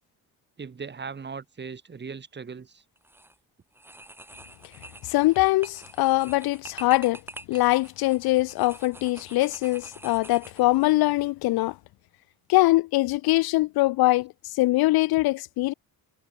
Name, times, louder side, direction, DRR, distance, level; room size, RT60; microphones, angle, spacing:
voice 1, 0.6-2.8, right 5 dB, 30° right, 3.9 m, -38 dB
sound 1, 3.0-3.4 3.7-11.0, right 1 dB, 5° right, 2.1 m, -46 dB
voice 2, 5.1-7.2 7.5-11.8 12.5-15.7, left 19 dB, 90° left, 0.8 m, -22 dB
cardioid pair, 125°, 36 cm